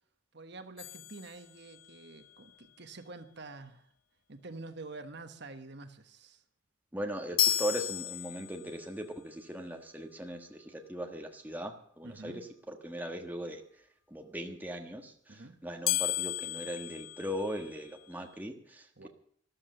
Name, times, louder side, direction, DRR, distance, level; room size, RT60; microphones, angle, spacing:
voice 1, 0.3-3.9 4.3-6.4 12.0-12.4 15.3-15.6 19.0-19.1, right 3 dB, 55° right, 8 dB, 1.2 m, -47 dB
sound 1, 0.8-2.1 7.4-8.9 15.9-18.0, left 13 dB, 85° left, 0.6 m, -33 dB
voice 2, 6.9-13.6 14.1-19.1, equal, 10° right, 3 dB, 1.4 m, -39 dB
13.5 x 12.0 x 6.7 m, 0.63 s
head